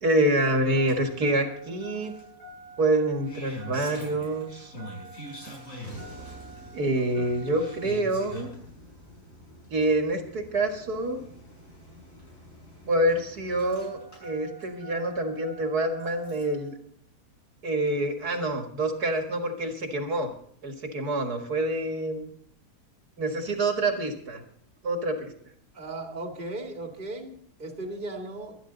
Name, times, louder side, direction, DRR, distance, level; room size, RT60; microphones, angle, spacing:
voice 1, 0.0-2.1 2.8-4.7 6.7-8.5 9.7-11.2 12.9-16.7 17.6-20.3 20.6-22.3 23.2-24.4 24.8-25.3, right 1 dB, 75° right, 4 dB, 2.3 m, -26 dB
Engine starting, 0.7-16.7 17.9-18.0, equal, 55° left, 7.4 m, -44 dB
voice 2, 25.7-28.6, right 2 dB, 30° right, 2 dB, 2.3 m, -37 dB
24.5 x 9.8 x 4.0 m, 0.65 s
omnidirectional pair, 1.7 m